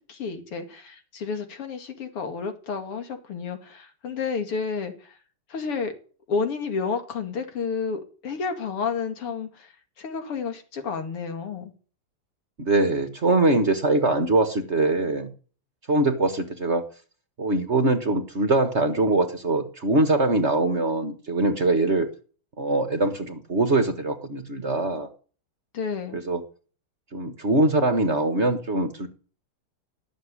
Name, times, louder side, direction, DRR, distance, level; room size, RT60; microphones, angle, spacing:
voice 1, 0.0-5.2 5.5-5.9 6.3-11.7 25.7-26.2, left 5 dB, 90° left, 3.3 m, -31 dB
voice 2, 12.6-15.3 15.9-16.9 17.4-22.1 22.6-25.1 26.1-26.4 27.1-29.1, right 2 dB, 35° right, 1.5 m, -22 dB
18.0 x 7.2 x 9.9 m
omnidirectional pair, 2.4 m